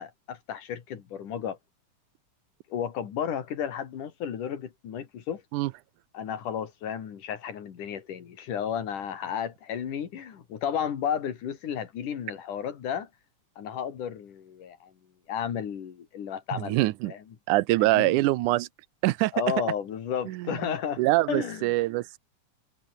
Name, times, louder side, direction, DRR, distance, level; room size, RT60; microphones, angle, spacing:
voice 1, 0.0-1.6 2.7-5.4 6.1-13.1 13.6-14.9 15.3-16.8 17.0-17.2 17.9-18.2 19.3-21.0 21.3-21.7, left 8 dB, 80° left, 4.0 m, -33 dB
voice 2, 16.5-17.1 17.5-18.7 19.0-19.3 20.3-20.6 21.0-22.2, right 18 dB, 85° right, 2.2 m, -24 dB
omnidirectional pair, 3.5 m